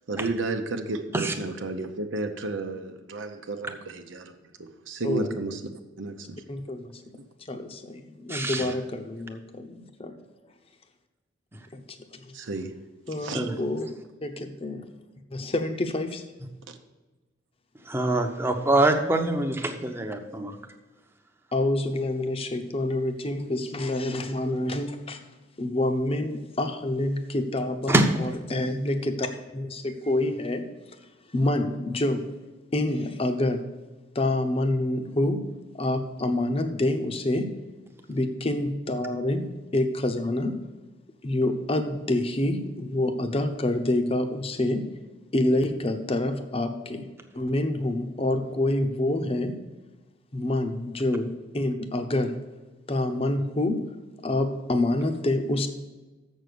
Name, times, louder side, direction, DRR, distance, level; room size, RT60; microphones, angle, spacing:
voice 1, 0.1-4.3 4.6-5.6 6.0-6.4 7.2-7.3 8.6-8.7 12.3-12.7 13.2-13.4, right 3 dB, 90° right, 5 dB, 0.8 m, -32 dB
voice 2, 6.5-6.9 7.5-10.2 11.7-11.8 12.1-12.2 13.1-13.9 14.2-14.8 15.3-16.2 21.5-25.2 25.6-29.3 29.5-30.6 31.3-32.3 32.7-33.6 34.1-35.4 35.7-37.5 38.1-39.5 39.7-40.6 41.2-44.9 45.3-47.1 47.3-49.5 50.3-52.4 52.9-53.8 54.2-55.7, left 1 dB, 30° left, 7 dB, 0.8 m, -27 dB
voice 3, 8.3-8.7 13.3-13.5 17.8-20.6 27.9-28.1, right 1 dB, 15° right, 4 dB, 0.8 m, -24 dB
7.4 x 6.3 x 6.8 m, 1.2 s
head